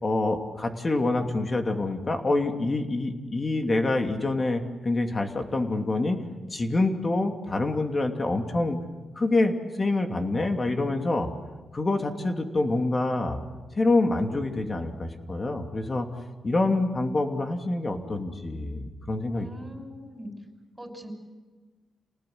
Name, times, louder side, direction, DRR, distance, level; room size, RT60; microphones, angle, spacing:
voice 1, 0.0-6.2 6.5-8.8 9.2-11.3 11.7-13.4 13.8-16.1 16.4-19.5, left 2 dB, 35° left, 5 dB, 2.8 m, -26 dB
voice 2, 19.3-20.3 20.8-21.1, equal, 15° right, 4 dB, 6.3 m, -42 dB
28.5 x 19.0 x 8.0 m, 1.3 s
cardioid pair, 70°, 0 cm